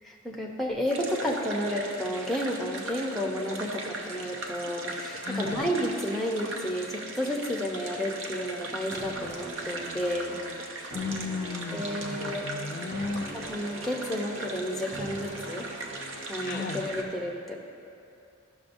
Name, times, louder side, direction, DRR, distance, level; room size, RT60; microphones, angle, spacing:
voice 1, 0.0-10.4 11.7-12.5 13.2-15.7 16.3-17.6, equal, ahead, -2 dB, 0.6 m, -31 dB
sound 1, 0.9-17.0, right 2 dB, 60° right, 0.7 m, -39 dB
voice 2, 5.2-5.6 10.9-13.3 16.4-16.8, left 4 dB, 45° left, 2 dB, 0.4 m, -34 dB
sound 2, 8.9-16.9, right 1 dB, 30° right, 0.9 m, -43 dB
13.0 x 6.1 x 2.6 m, 2.5 s
head